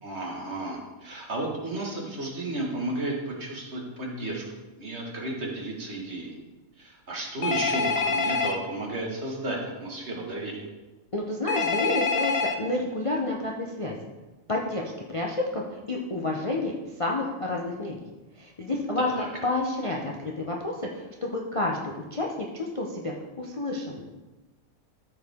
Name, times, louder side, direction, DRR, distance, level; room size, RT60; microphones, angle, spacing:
voice 1, 0.0-4.4 4.8-6.4 6.8-10.7 19.0-19.3, right 2 dB, 50° right, -1 dB, 1.8 m, -33 dB
Telephone, 7.4-8.6 11.5-12.5, left 4 dB, 75° left, 1.2 m, -26 dB
voice 2, 11.1-14.0 14.5-16.7 17.0-18.0 18.4-24.0, left 2 dB, 30° left, -1 dB, 0.6 m, -30 dB
13.5 x 4.8 x 3.6 m, 1.1 s
omnidirectional pair, 1.5 m